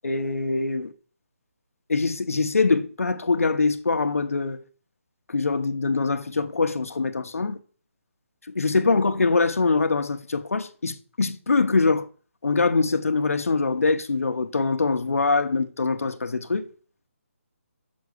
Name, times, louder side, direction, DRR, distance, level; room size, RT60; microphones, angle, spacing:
voice 1, 0.0-0.9 1.9-4.6 5.3-7.6 8.5-12.1 12.4-16.7, left 4 dB, 85° left, 1.1 m, -23 dB
6.5 x 4.8 x 6.6 m
hypercardioid pair, 180°, 8 cm